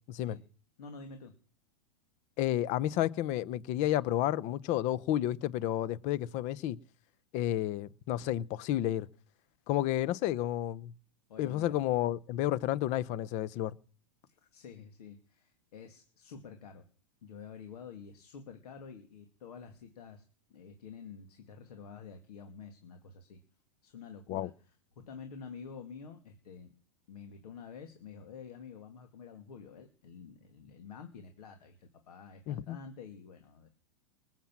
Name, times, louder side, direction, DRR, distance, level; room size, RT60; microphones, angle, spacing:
voice 1, 0.8-1.3 11.3-11.8 14.2-16.9 17.2-20.2 20.5-23.4 23.8-26.7 27.1-33.7, left 6 dB, 75° left, 2.4 m, -49 dB
voice 2, 2.4-6.8 7.3-9.1 9.7-10.9 11.4-13.7 24.3-24.5 32.5-32.8, left 13 dB, 35° left, 0.7 m, -31 dB
20.0 x 7.4 x 7.4 m
hypercardioid pair, 130°, 20 cm